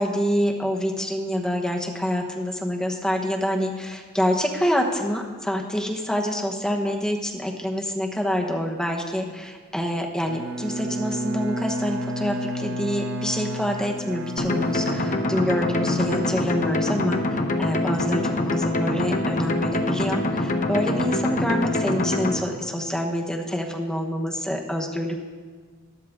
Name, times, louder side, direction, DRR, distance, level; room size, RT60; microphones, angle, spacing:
voice 1, 0.0-25.2, equal, 5° left, 1 dB, 1.1 m, -26 dB
Bowed string instrument, 10.3-16.9, right 1 dB, 65° right, 0.8 m, -32 dB
sound 1, 14.4-22.4, left 2 dB, 40° left, 0.8 m, -25 dB
13.0 x 11.0 x 3.6 m, 1.5 s
head